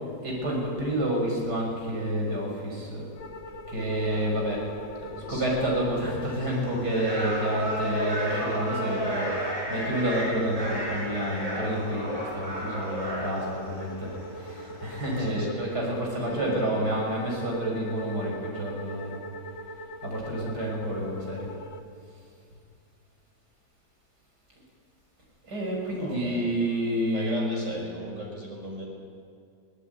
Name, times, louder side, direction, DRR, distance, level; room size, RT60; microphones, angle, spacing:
voice 1, 0.2-3.0 3.7-4.6 5.3-19.2 20.0-21.5 25.4-27.7, right 1 dB, 65° right, -1 dB, 6.7 m, -29 dB
sound 1, 3.2-21.8, equal, 85° left, 1.7 m, -42 dB
voice 2, 4.0-4.5 5.0-5.4 15.2-15.7 16.1-16.8 25.9-26.4 27.0-28.9, right 1 dB, 45° right, -1 dB, 5.7 m, -38 dB
sound 2, 6.2-15.4, equal, 20° right, 6.1 m, -33 dB
23.0 x 17.5 x 9.4 m, 2.4 s
omnidirectional pair, 1.9 m